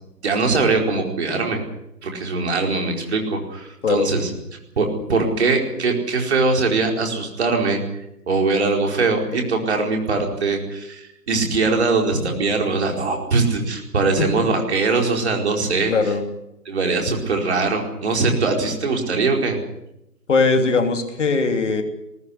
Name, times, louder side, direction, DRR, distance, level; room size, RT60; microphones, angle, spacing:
voice 1, 0.2-1.6 2.0-4.3 4.8-7.8 8.3-15.9 16.7-19.6, right 3 dB, 40° right, 2 dB, 4.7 m, -21 dB
voice 2, 15.9-16.2 20.3-21.8, left 4 dB, 50° left, 6 dB, 3.0 m, -19 dB
20.5 x 19.0 x 8.3 m, 0.85 s
figure-of-eight pair, 160°, 48 cm